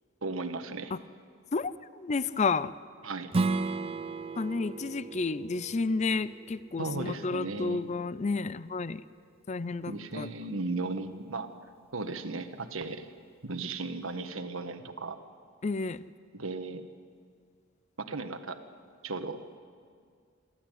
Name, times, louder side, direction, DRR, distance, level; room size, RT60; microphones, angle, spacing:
voice 1, 0.2-0.9 3.0-3.3 6.8-7.8 9.9-11.5 11.9-13.1 13.4-15.2 16.3-16.9 18.0-18.6 19.0-19.4, right 3 dB, 80° right, 8 dB, 1.5 m, -36 dB
voice 2, 1.5-2.7 4.4-9.0 9.5-10.3 15.6-16.0, left 4 dB, 35° left, 17 dB, 0.5 m, -31 dB
Strum, 3.3-8.5, right 3 dB, 30° right, 0.5 m, -35 dB
27.5 x 13.0 x 9.3 m, 2.1 s
head